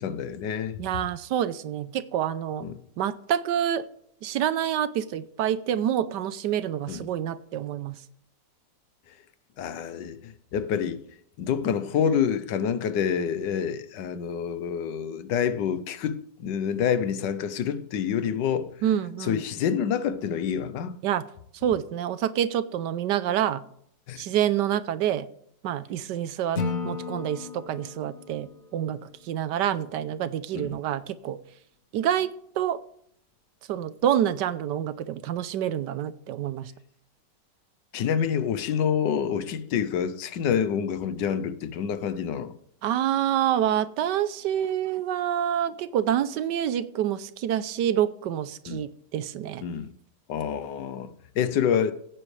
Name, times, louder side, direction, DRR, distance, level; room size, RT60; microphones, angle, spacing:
voice 1, 0.0-0.8 2.6-2.8 6.9-7.1 9.6-11.0 11.4-18.8 19.2-21.0 24.1-24.3 30.5-30.8 37.9-42.5 48.7-48.8 49.6-49.9 50.3-51.9, left 8 dB, 75° left, 1.4 m, -27 dB
voice 2, 0.8-2.7 3.0-3.9 4.2-8.0 18.8-19.4 21.0-21.2 21.6-23.6 24.2-25.3 25.6-26.6 26.8-31.4 31.9-32.3 32.6-32.8 33.7-36.7 42.8-49.6, right 10 dB, 75° right, 1.2 m, -27 dB
Acoustic guitar / Strum, 26.6-29.7, left 4 dB, 55° left, 1.4 m, -35 dB
16.0 x 9.1 x 3.2 m
omnidirectional pair, 1.9 m